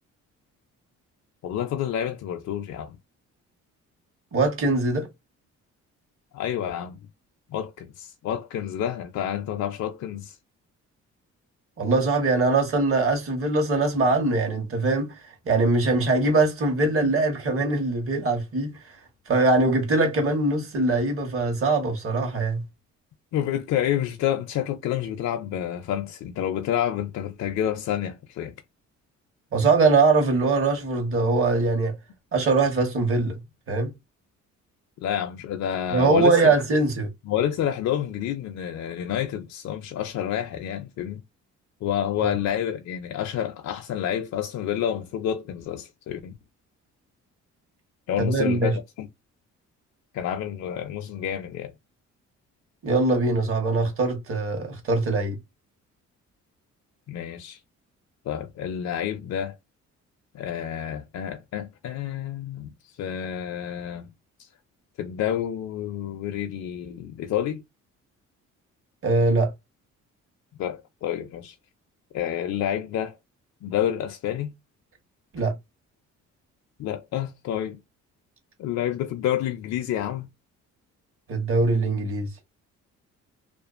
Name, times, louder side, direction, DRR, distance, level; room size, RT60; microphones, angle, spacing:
voice 1, 1.4-3.0 6.3-7.0 7.5-10.4 23.3-28.5 35.0-36.5 37.2-41.2 41.8-46.3 48.1-49.1 50.1-51.7 57.1-57.6 58.3-59.5 60.3-64.1 64.4-64.5 65.0-67.6 70.6-71.6 72.1-73.2 73.6-74.5 76.8-77.8 78.6-80.3, left 10 dB, 65° left, 0.4 m, -29 dB
voice 2, 4.3-5.1 11.8-15.2 15.4-18.8 19.3-22.6 29.5-32.0 32.3-33.4 33.7-33.9 35.9-37.1 42.2-42.3 48.2-48.8 52.8-55.4 69.0-69.5 75.3-75.5 81.3-82.3, right 3 dB, 45° right, 1.1 m, -22 dB
2.5 x 2.3 x 2.4 m
cardioid pair, 90°, 30 cm